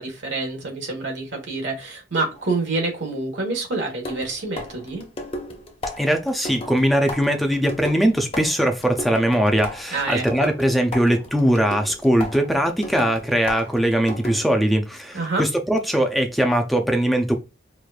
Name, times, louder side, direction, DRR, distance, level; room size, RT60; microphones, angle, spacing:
voice 1, 0.0-5.0 9.9-10.5 15.1-15.5, right 3 dB, 85° right, 1.4 m, -27 dB
sound 1, 2.3-2.5 4.0-14.6, left 1 dB, 30° left, 0.7 m, -35 dB
voice 2, 6.0-17.4, equal, ahead, 0.5 m, -20 dB
4.7 x 2.5 x 2.4 m
head